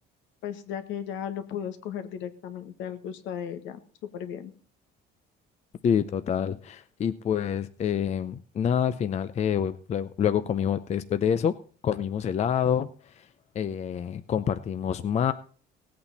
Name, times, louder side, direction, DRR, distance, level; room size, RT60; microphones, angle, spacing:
voice 1, 0.4-4.5, left 9 dB, 75° left, 9 dB, 1.6 m, -36 dB
voice 2, 5.8-11.5 11.8-13.3 13.5-15.3, left 8 dB, 35° left, 12 dB, 0.6 m, -27 dB
17.5 x 8.6 x 4.2 m, 0.41 s
cardioid pair, 140°, 20 cm